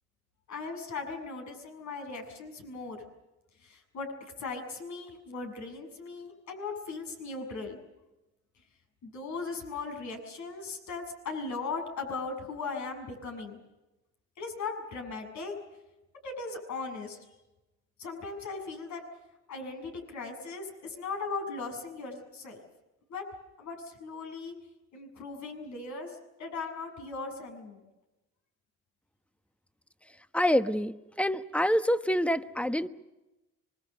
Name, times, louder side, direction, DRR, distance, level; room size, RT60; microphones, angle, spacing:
voice 1, 0.5-3.0 3.6-4.1 4.4-7.8 9.0-13.6 14.4-15.5 16.2-17.2 18.0-19.0 19.5-22.6 23.1-23.2 23.6-24.5 24.9-27.8, left 4 dB, 70° left, 4 dB, 7.1 m, -38 dB
voice 2, 30.3-32.9, equal, 5° left, 10 dB, 1.2 m, -26 dB
25.5 x 24.0 x 6.8 m, 1.0 s
cardioid pair, 90°, 30 cm